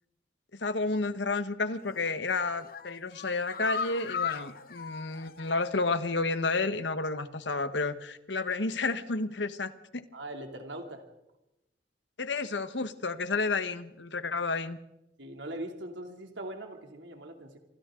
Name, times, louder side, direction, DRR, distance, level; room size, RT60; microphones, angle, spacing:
voice 1, 0.5-10.0 12.2-14.8, left 3 dB, 75° left, 11 dB, 1.3 m, -31 dB
sound 1, 1.8-2.2 2.6-6.0 6.3-6.4 6.7-6.8, left 6 dB, 55° left, 1.0 m, -38 dB
voice 2, 10.1-11.0 15.2-17.6, right 1 dB, 85° right, 3 dB, 2.9 m, -41 dB
28.0 x 24.0 x 3.8 m, 0.91 s
head